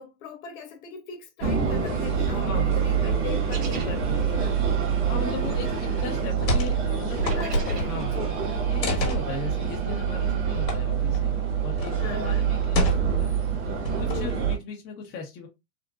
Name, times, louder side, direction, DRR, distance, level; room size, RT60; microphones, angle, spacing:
voice 1, 0.0-4.6 7.1-8.4 12.0-12.5 14.0-14.4, left 7 dB, 50° left, 1.1 m, -39 dB
sound 1, 1.4-14.6, right 7 dB, 40° right, 1.5 m, -26 dB
sound 2, 1.4-8.0, right 6 dB, 75° right, 1.4 m, -40 dB
voice 2, 2.4-2.7 5.0-7.2 7.7-8.2 8.6-11.3 11.6-13.3 13.6-15.5, left 4 dB, 30° left, 0.6 m, -37 dB
sound 3, 6.4-6.8 7.0-8.1 8.8-9.2 10.7-10.8 11.1-11.2 11.8-12.0 12.7-13.3 13.8-14.4, left 1 dB, 85° left, 1.3 m, -27 dB
3.7 x 2.1 x 2.3 m
hypercardioid pair, 120°, 49 cm